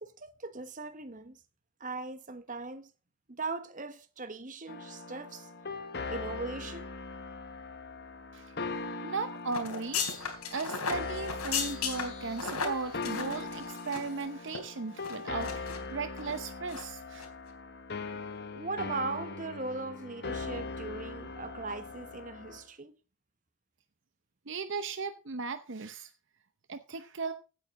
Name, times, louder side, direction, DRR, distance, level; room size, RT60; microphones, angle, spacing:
voice 1, 0.0-1.4 1.8-2.9 3.3-5.5 6.1-6.9 18.5-23.0, right 3 dB, 35° right, 1.1 m, -39 dB
sound 1, 4.7-22.6, left 3 dB, 50° left, 1.2 m, -40 dB
voice 2, 9.0-10.2 10.5-17.3 24.5-26.1 26.7-27.3, right 4 dB, 55° right, 0.7 m, -37 dB
sound 2, 9.5-14.2 14.5-14.6 15.0-15.8 16.2-16.4 16.7-16.9 17.2-17.3, left 5 dB, 85° left, 3.5 m, -35 dB
16.0 x 8.9 x 3.7 m
head